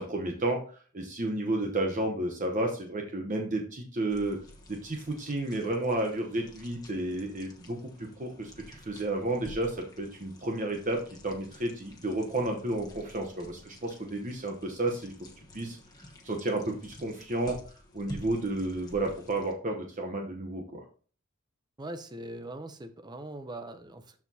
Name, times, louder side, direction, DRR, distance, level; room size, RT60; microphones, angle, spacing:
voice 1, 0.0-4.4 4.7-15.1 15.5-15.8 16.2-17.6 17.9-20.8, right 2 dB, 35° right, 0.9 m, -32 dB
sound 1, 4.1-19.5, left 1 dB, 15° left, 1.2 m, -50 dB
voice 2, 21.8-24.2, right 1 dB, 20° right, 0.6 m, -41 dB
13.0 x 4.6 x 2.8 m
head